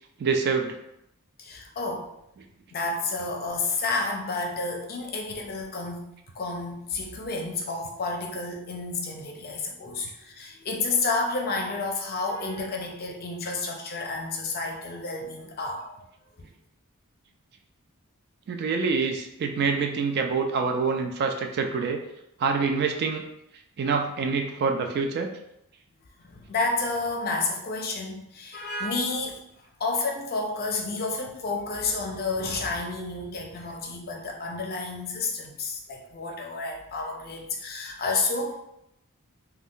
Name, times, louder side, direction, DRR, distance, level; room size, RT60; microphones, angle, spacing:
voice 1, 0.2-0.8 18.5-22.0 22.4-23.3 23.8-25.3, right 5 dB, 45° right, 4 dB, 0.3 m, -26 dB
voice 2, 1.4-2.1 2.7-6.1 6.3-16.0 26.3-29.4 29.8-38.5, left 3 dB, 45° left, 1 dB, 0.5 m, -30 dB
2.4 x 2.2 x 3.6 m, 0.80 s
head